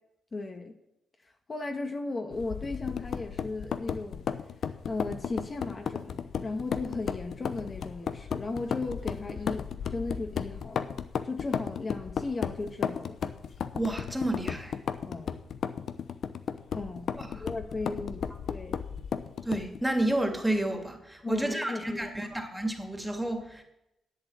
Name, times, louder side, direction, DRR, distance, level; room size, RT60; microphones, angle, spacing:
voice 1, 0.3-0.8 1.5-4.2 4.9-10.9 11.2-13.2 15.1-15.3 16.7-17.1 17.4-18.8 21.2-22.1, left 3 dB, 35° left, 4 dB, 1.5 m, -36 dB
sound 1, 2.3-19.8, left 7 dB, 70° left, 0.8 m, -35 dB
voice 2, 13.7-14.7 17.2-17.5 19.4-23.6, right 1 dB, 5° right, 4 dB, 2.5 m, -30 dB
11.0 x 8.1 x 8.8 m, 0.86 s
cardioid pair, 75°, 0 cm